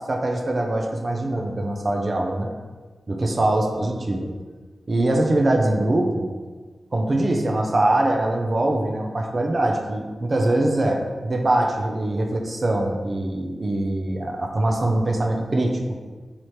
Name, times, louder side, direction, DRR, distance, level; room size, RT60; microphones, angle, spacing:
voice 1, 0.1-2.5 3.1-4.3 4.9-6.3 6.9-16.0, right 1 dB, 40° right, 2 dB, 0.5 m, -23 dB
4.7 x 2.8 x 3.0 m, 1.4 s
wide cardioid pair, 110°, 0 cm